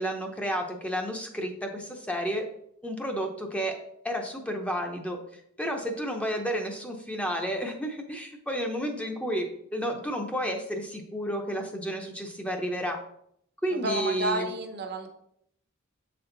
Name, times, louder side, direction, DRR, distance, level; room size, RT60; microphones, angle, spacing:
voice 1, 0.0-2.4 2.8-3.8 4.0-5.2 5.6-13.0 13.6-14.5, equal, 5° left, 3 dB, 0.7 m, -31 dB
voice 2, 13.8-15.1, right 2 dB, 50° right, 6 dB, 0.8 m, -30 dB
7.4 x 4.4 x 3.9 m, 0.71 s
head